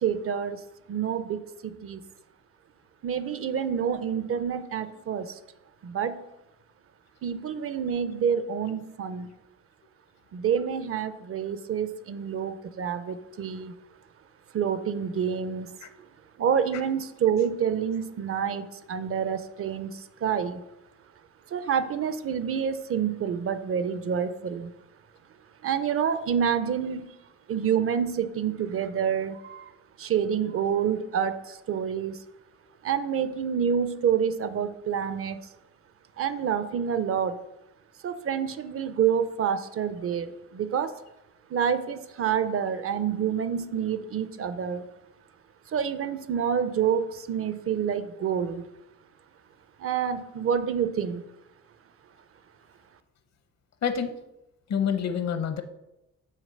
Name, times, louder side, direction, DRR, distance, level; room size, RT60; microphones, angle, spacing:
voice 1, 0.0-0.6 0.9-2.0 3.0-5.3 5.8-6.2 7.2-9.3 10.3-13.7 14.5-15.7 16.4-20.6 21.5-24.7 25.6-27.0 27.5-29.7 30.0-32.2 32.8-35.4 36.2-37.4 38.0-40.9 41.5-44.8 45.7-48.6 49.8-51.2, right 8 dB, 50° right, 12 dB, 0.5 m, -28 dB
voice 2, 54.7-55.6, left 7 dB, 65° left, 9 dB, 0.8 m, -27 dB
6.5 x 4.4 x 6.4 m, 0.91 s
wide cardioid pair, 155°, 29 cm